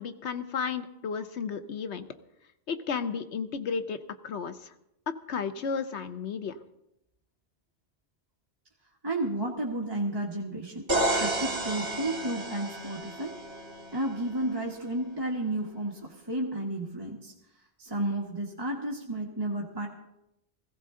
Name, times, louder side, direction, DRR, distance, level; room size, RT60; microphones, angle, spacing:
voice 1, 0.0-2.1 2.7-4.7 5.3-6.6, left 6 dB, 80° left, 10 dB, 1.1 m, -33 dB
voice 2, 9.0-13.3 13.9-17.3 17.8-19.9, right 1 dB, 20° right, -1 dB, 1.4 m, -32 dB
sound 1, 10.9-14.7, right 1 dB, 65° right, 2.8 m, -32 dB
16.5 x 16.0 x 3.8 m, 0.84 s
omnidirectional pair, 1.1 m